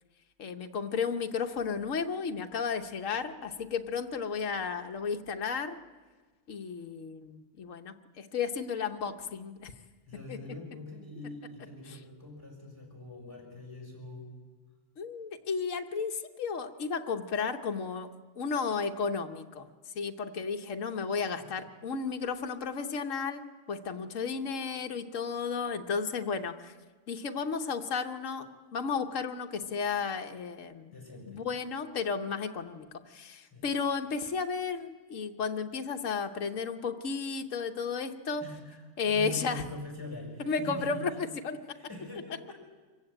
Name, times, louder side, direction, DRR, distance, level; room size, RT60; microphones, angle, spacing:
voice 1, 0.4-5.8 6.5-9.7 10.3-10.4 15.0-18.1 18.4-19.7 19.9-23.4 23.7-26.7 27.1-28.5 28.7-30.9 31.3-38.4 39.0-39.6 40.5-41.6, left 5 dB, 75° left, 5 dB, 1.4 m, -33 dB
voice 2, 10.1-14.3 21.4-21.5 30.9-31.4 33.5-33.7 38.4-41.1 41.7-42.5, left 2 dB, 15° left, 1 dB, 6.3 m, -43 dB
25.0 x 15.0 x 9.0 m, 1.4 s
omnidirectional pair, 1.3 m